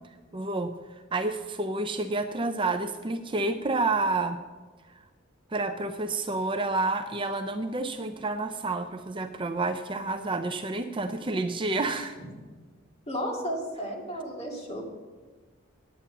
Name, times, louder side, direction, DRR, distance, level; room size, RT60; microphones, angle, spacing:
voice 1, 0.3-0.7 1.1-4.4 5.5-12.2, right 3 dB, 25° right, 7 dB, 0.5 m, -29 dB
voice 2, 13.1-14.8, equal, 30° left, -1 dB, 2.4 m, -33 dB
9.9 x 8.7 x 6.8 m, 1.4 s
head